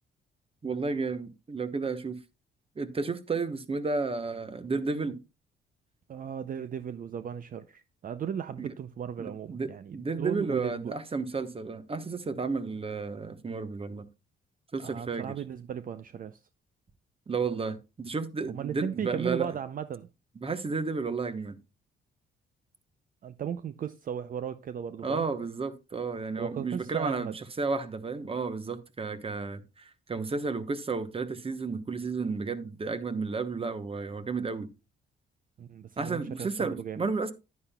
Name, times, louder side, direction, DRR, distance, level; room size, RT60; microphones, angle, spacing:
voice 1, 0.6-2.2 2.8-5.2 8.6-8.7 9.2-14.0 14.7-15.3 17.3-19.5 20.4-21.6 25.0-34.7 36.0-37.3, right 4 dB, 30° right, 1.0 m, -32 dB
voice 2, 6.1-10.9 14.8-16.4 18.5-20.1 23.2-25.2 26.4-27.4 35.6-37.0, right 8 dB, 45° right, 0.5 m, -36 dB
10.0 x 9.4 x 2.3 m
cardioid pair, 90°, 20 cm